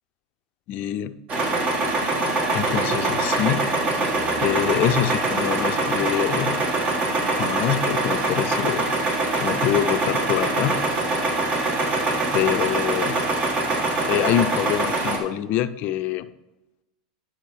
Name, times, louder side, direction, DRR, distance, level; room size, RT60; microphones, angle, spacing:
voice 1, 0.7-1.1 2.5-3.6 4.4-6.6 7.3-8.9 9.4-10.8 12.3-13.2 14.1-16.3, left 12 dB, 50° left, 11 dB, 0.5 m, -25 dB
sound 1, 1.3-15.2, right 2 dB, 35° right, 1.6 m, -23 dB
10.0 x 6.2 x 3.2 m, 0.99 s
hypercardioid pair, 100°, 4 cm